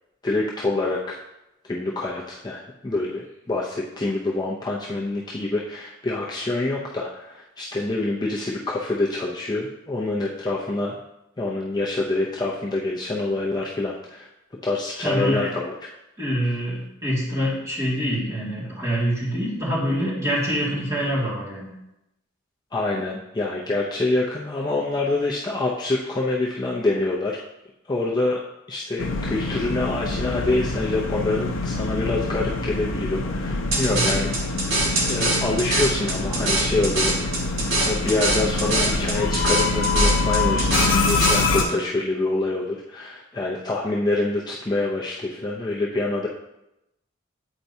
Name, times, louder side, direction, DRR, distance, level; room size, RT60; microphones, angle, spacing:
voice 1, 0.2-1.2 1.7-10.9 11.4-14.3 14.6-15.8 22.7-27.4 27.9-28.4 28.7-34.3 35.0-37.4 37.8-46.3, left 2 dB, 20° left, -4 dB, 0.4 m, -26 dB
voice 2, 15.0-15.5 16.2-21.7 33.9-34.1, equal, 15° right, -9 dB, 2.1 m, -25 dB
sound 1, 29.0-41.6, left 3 dB, 70° left, 0.6 m, -25 dB
sound 2, 33.7-41.7, right 2 dB, 70° right, 1.6 m, -24 dB
8.0 x 4.4 x 2.7 m, 0.90 s
head